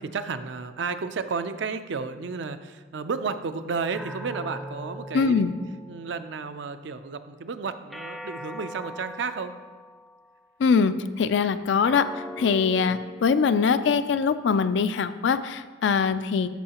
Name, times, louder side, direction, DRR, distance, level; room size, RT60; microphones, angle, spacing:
voice 1, 0.0-5.4 5.9-9.5 12.9-13.0, right 5 dB, 65° right, 10 dB, 0.5 m, -32 dB
sound 1, 3.9-6.5 7.9-10.5 11.9-14.5, equal, ahead, 0.5 m, -41 dB
voice 2, 5.1-5.5 10.6-12.0 12.4-16.5, left 5 dB, 65° left, 12 dB, 0.4 m, -22 dB
13.0 x 5.5 x 2.9 m, 1.4 s
head